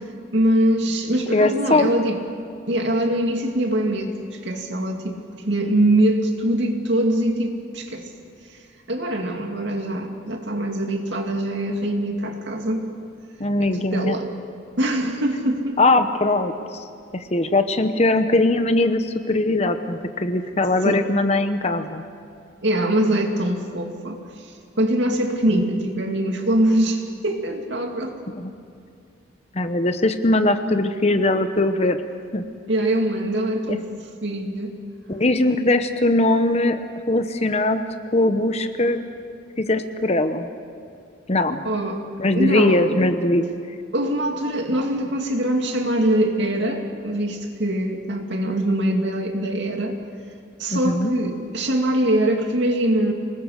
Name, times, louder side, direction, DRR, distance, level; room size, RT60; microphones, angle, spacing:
voice 1, 0.3-2.2 2.7-8.1 8.9-12.9 13.6-14.3 14.8-15.8 20.8-21.1 22.6-24.2 24.8-28.2 32.7-34.8 41.6-42.8 43.9-50.0 50.6-53.1, right 1 dB, 65° right, 3 dB, 2.5 m, -23 dB
voice 2, 1.3-1.9 13.4-14.2 15.8-16.8 17.1-22.0 28.3-28.5 29.5-32.0 32.3-32.4 33.7-33.8 35.1-37.8 38.1-39.0 39.6-40.5 41.3-41.6 42.2-43.4 50.7-51.1, left 2 dB, 35° left, 8 dB, 0.9 m, -20 dB
26.5 x 20.0 x 6.6 m, 2.3 s
head